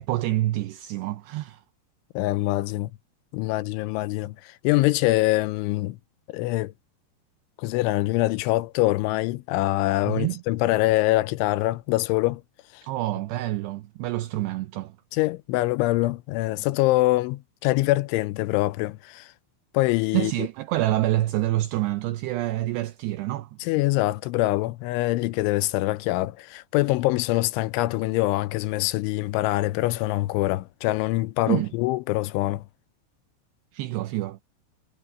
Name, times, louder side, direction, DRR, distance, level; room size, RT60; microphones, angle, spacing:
voice 1, 0.0-1.6 10.0-10.4 12.8-15.0 20.1-23.6 31.5-31.7 33.7-34.4, right 16 dB, 85° right, 2.4 m, -27 dB
voice 2, 2.2-2.9 3.3-6.0 6.3-6.7 7.6-12.4 12.7-12.8 15.1-19.3 19.7-20.3 23.6-32.6, left 18 dB, 80° left, 3.0 m, -24 dB
omnidirectional pair, 5.6 m